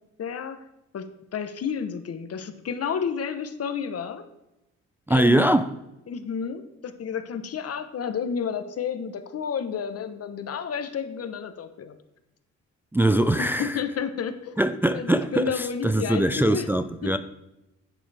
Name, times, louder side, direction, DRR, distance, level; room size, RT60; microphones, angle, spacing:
voice 1, 0.2-0.6 0.9-4.2 5.1-5.5 6.1-12.0 13.4-16.7 17.0-17.2, left 7 dB, 50° left, 1.1 m, -31 dB
voice 2, 5.1-5.7 12.9-13.7 14.6-17.2, right 1 dB, 5° right, 0.5 m, -22 dB
10.5 x 9.3 x 3.5 m
cardioid pair, 90°, 30 cm